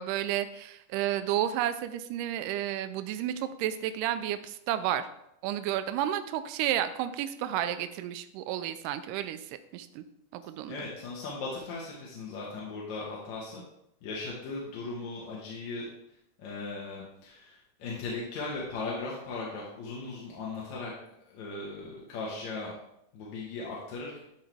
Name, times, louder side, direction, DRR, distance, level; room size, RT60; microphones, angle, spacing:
voice 1, 0.0-5.1 5.4-9.4 9.7-10.0 10.3-10.8, right 11 dB, 85° right, 10 dB, 2.1 m, -31 dB
voice 2, 10.7-13.6 14.0-15.9 16.4-20.9 21.3-22.7 23.1-24.2, left 3 dB, 65° left, -4 dB, 2.5 m, -38 dB
12.0 x 4.6 x 3.3 m, 0.79 s
omnidirectional pair, 3.7 m